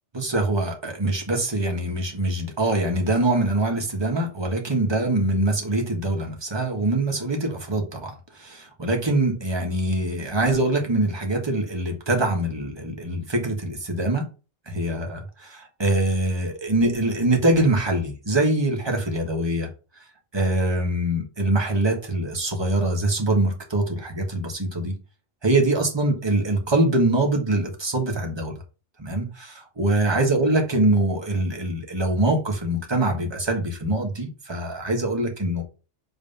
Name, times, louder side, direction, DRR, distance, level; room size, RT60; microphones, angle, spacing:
voice 1, 0.1-14.3 14.7-19.7 20.3-24.9 25.4-28.5 29.0-35.6, right 2 dB, 20° right, 1.4 m, -24 dB
5.5 x 3.3 x 5.4 m
omnidirectional pair, 1.2 m